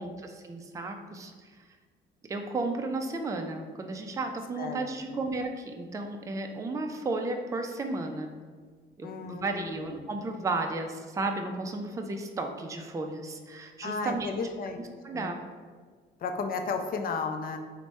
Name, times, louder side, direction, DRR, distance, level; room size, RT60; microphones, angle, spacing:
voice 1, 0.0-1.7 2.3-8.3 9.0-14.3 15.0-15.4, right 3 dB, 15° right, 4 dB, 0.3 m, -33 dB
voice 2, 9.0-10.0 13.8-15.3 16.2-17.6, left 4 dB, 45° left, 6 dB, 0.4 m, -34 dB
3.3 x 2.1 x 4.0 m, 1.6 s
cardioid pair, 90°, 20 cm